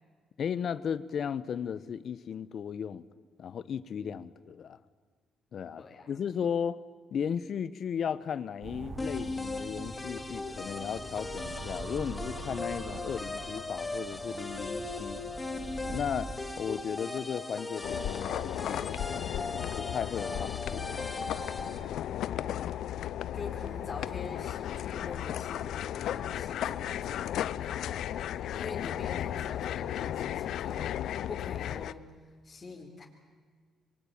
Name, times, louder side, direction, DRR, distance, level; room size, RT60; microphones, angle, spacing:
voice 1, 0.4-3.1 3.4-4.8 5.5-6.8 7.1-15.2 15.9-16.3 16.6-19.4 19.7-21.0, left 7 dB, 60° left, 16 dB, 1.2 m, -35 dB
voice 2, 5.8-6.1 23.3-27.3 27.6-32.1 32.4-33.1, left 4 dB, 35° left, 0 dB, 4.0 m, -45 dB
sound 1, 8.6-16.3, right 3 dB, 40° right, 3.5 m, -44 dB
sound 2, 9.0-21.8, left 2 dB, 20° left, 3.1 m, -38 dB
sound 3, 17.8-31.9, left 11 dB, 75° left, 0.7 m, -35 dB
26.5 x 22.5 x 9.1 m, 1.5 s
cardioid pair, 90°, 0 cm